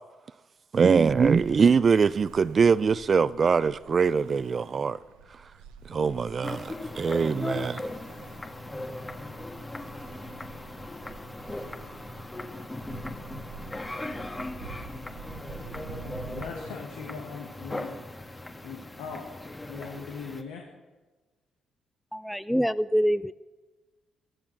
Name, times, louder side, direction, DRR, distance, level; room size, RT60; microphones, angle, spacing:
voice 1, 0.7-5.0 5.9-7.8, right 5 dB, 50° right, 0.5 m, -23 dB
Ocean, 1.0-16.5, right 6 dB, 85° right, 1.2 m, -47 dB
kitchen-sink-drop, 6.4-20.4, left 2 dB, 20° left, 1.7 m, -38 dB
voice 2, 15.9-17.9 18.6-19.2 19.7-20.7, left 5 dB, 85° left, 2.0 m, -40 dB
voice 3, 22.1-23.3, equal, ahead, 0.5 m, -25 dB
15.5 x 13.0 x 6.2 m
hypercardioid pair, 45°, 0 cm